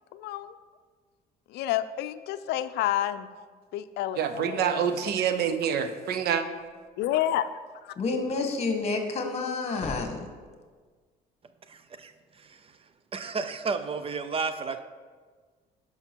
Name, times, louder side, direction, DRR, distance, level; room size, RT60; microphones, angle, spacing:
voice 1, 0.1-0.6 1.5-3.3 3.7-4.9 7.0-7.5 7.8-7.9, left 12 dB, 80° left, 12 dB, 0.5 m, -29 dB
voice 2, 4.2-6.4, right 8 dB, 70° right, 9 dB, 0.8 m, -26 dB
sound 1, 6.5-7.1 9.3-10.8, left 2 dB, 5° left, 0.9 m, -42 dB
voice 3, 8.0-10.3, left 3 dB, 40° left, 5 dB, 1.5 m, -29 dB
voice 4, 11.7-12.1 12.4-12.6 13.1-14.8, right 4 dB, 35° right, 10 dB, 0.5 m, -32 dB
11.0 x 5.8 x 4.5 m, 1.5 s
cardioid pair, 110°, 17 cm